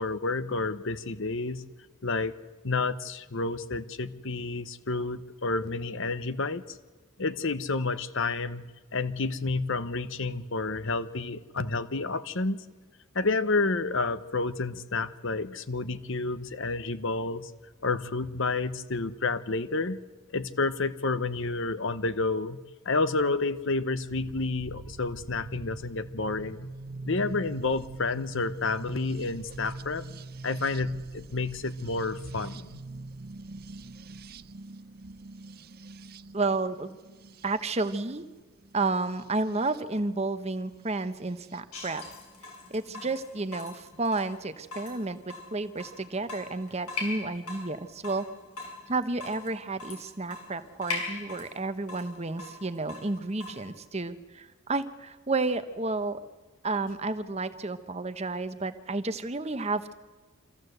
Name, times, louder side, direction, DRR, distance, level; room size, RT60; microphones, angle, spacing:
voice 1, 0.0-1.6 2.0-2.4 2.6-6.8 7.2-8.6 8.9-12.6 13.1-17.5 17.8-20.0 20.3-22.6 22.8-26.7 27.1-30.0 30.4-32.7, left 3 dB, 60° left, 13 dB, 0.9 m, -30 dB
sound 1, 24.1-39.8 41.0-41.6, right 3 dB, 45° right, 0.5 m, -43 dB
voice 2, 36.3-37.0 37.4-38.2 38.7-42.0 42.7-48.3 48.9-56.2 56.6-59.9, right 3 dB, 30° right, 10 dB, 1.0 m, -31 dB
Water tap faucet / Drip, 41.7-53.7, left 3 dB, 85° left, 6.1 m, -41 dB
25.5 x 15.0 x 7.9 m, 1.3 s
head